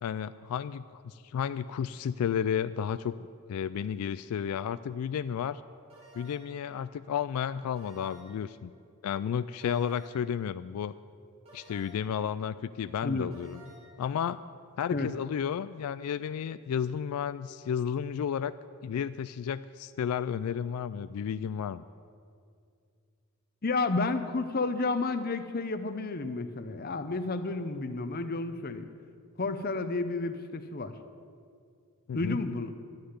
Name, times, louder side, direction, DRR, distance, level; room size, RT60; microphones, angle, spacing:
voice 1, 0.0-3.1 3.5-5.6 6.1-8.7 9.0-10.9 11.5-13.6 14.0-14.4 14.8-18.5 18.8-21.8 32.1-32.4, left 8 dB, 85° left, 14 dB, 0.3 m, -32 dB
sound 1, 5.9-6.6 7.7-8.5 9.6-10.3 11.5-12.2 13.3-13.9, right 1 dB, 30° right, 2.3 m, -54 dB
voice 2, 23.6-28.9 29.4-30.9 32.1-32.7, left 3 dB, 45° left, 9 dB, 0.7 m, -31 dB
12.5 x 6.7 x 9.6 m, 2.3 s
head